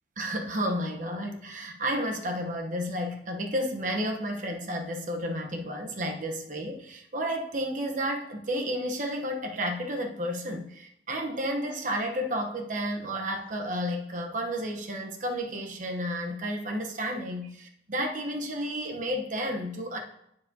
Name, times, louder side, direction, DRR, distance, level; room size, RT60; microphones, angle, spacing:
voice 1, 0.2-20.0, equal, 45° right, 3 dB, 1.0 m, -32 dB
14.5 x 4.8 x 2.8 m, 0.77 s
head